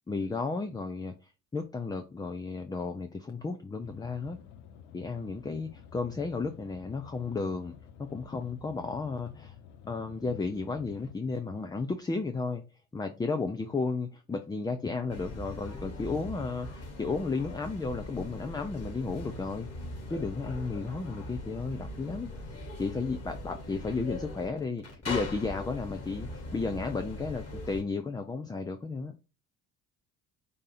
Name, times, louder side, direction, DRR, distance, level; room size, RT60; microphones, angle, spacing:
voice 1, 0.1-1.1 1.5-4.4 4.9-7.7 8.0-9.5 9.8-12.6 12.9-19.7 20.1-22.3 22.8-29.1, left 4 dB, 10° left, 0.4 m, -33 dB
sound 1, 3.8-11.1, left 8 dB, 80° left, 0.7 m, -51 dB
sound 2, 15.1-27.8, left 2 dB, 35° left, 2.6 m, -40 dB
5.0 x 2.7 x 3.9 m
figure-of-eight pair, 50°, 43 cm